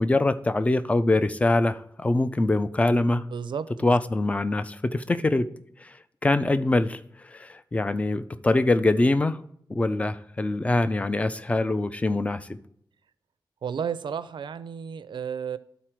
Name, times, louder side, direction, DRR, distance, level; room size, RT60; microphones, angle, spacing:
voice 1, 0.0-3.2 3.8-5.5 5.8-6.0 6.2-9.4 9.7-12.6, left 2 dB, 15° left, 0.4 m, -24 dB
voice 2, 3.3-4.0 13.6-15.6, right 7 dB, 75° right, 0.4 m, -32 dB
12.0 x 4.1 x 4.5 m
wide cardioid pair, 165°, 8 cm